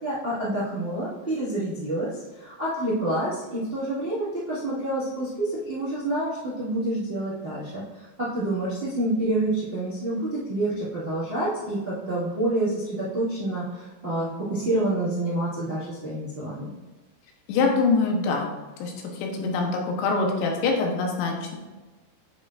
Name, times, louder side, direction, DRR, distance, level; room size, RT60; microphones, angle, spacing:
voice 1, 0.0-16.7, right 1 dB, 75° right, -10 dB, 0.5 m, -28 dB
voice 2, 17.5-18.5 18.8-21.6, left 4 dB, 85° left, 1 dB, 3.3 m, -24 dB
8.9 x 5.5 x 2.6 m, 1.2 s
omnidirectional pair, 5.0 m